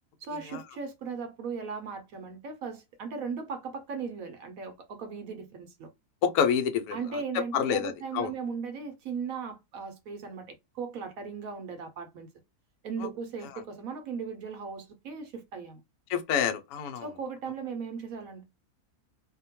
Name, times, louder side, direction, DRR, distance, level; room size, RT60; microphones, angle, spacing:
voice 1, 0.2-5.9 6.9-12.3 12.8-15.8 17.0-18.4, right 5 dB, 70° right, 0.9 m, -37 dB
voice 2, 6.2-7.0 7.3-8.3 13.0-13.1 16.1-17.1, left 8 dB, 75° left, 1.0 m, -27 dB
2.7 x 2.1 x 2.8 m
omnidirectional pair, 1.7 m